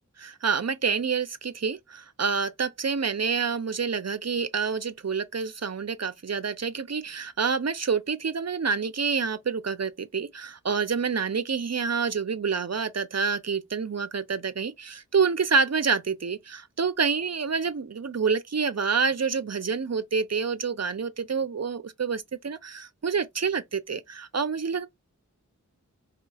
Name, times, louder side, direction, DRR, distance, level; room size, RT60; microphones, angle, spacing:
voice 1, 0.2-24.9, right 5 dB, 55° right, 0.7 m, -28 dB
4.9 x 2.9 x 2.4 m
wide cardioid pair, 60°, 31 cm